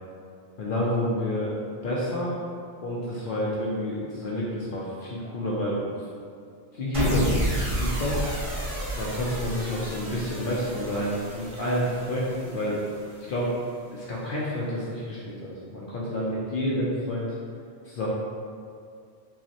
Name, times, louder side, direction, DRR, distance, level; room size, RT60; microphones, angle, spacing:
voice 1, 0.6-1.5 1.8-2.4 2.8-5.9 6.7-8.2 8.9-12.8 13.3-13.5 13.9-17.4 17.8-18.1, left 1 dB, 60° left, -6 dB, 0.6 m, -29 dB
sound 1, 6.9-13.3, right 1 dB, 35° right, 0.9 m, -31 dB
5.5 x 2.1 x 2.7 m, 2.3 s
omnidirectional pair, 1.1 m